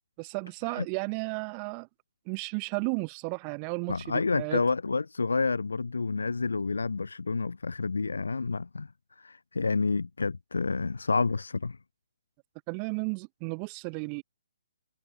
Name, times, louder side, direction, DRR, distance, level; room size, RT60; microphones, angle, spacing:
voice 1, 0.2-1.9 2.3-4.6 12.7-14.2, right 40 dB or more, 30° right, 2.0 m, -33 dB
voice 2, 3.9-8.9 9.2-11.8, left 4 dB, 85° left, 5.7 m, -29 dB
hypercardioid pair, 140°, 0 cm